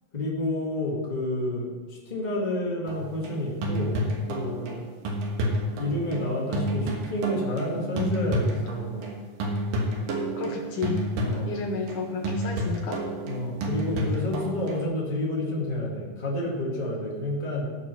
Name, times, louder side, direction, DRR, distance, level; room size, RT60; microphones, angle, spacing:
voice 1, 0.1-4.9 5.8-9.2 11.2-11.5 13.2-17.7, left 1 dB, 20° left, -4 dB, 1.2 m, -30 dB
sound 1, 2.9-9.1 9.4-14.8, right 1 dB, 65° right, 2.8 m, -30 dB
voice 2, 10.4-11.1 11.5-13.0, left 5 dB, 80° left, 2 dB, 1.8 m, -31 dB
16.0 x 5.6 x 5.7 m, 1.4 s
omnidirectional pair, 4.6 m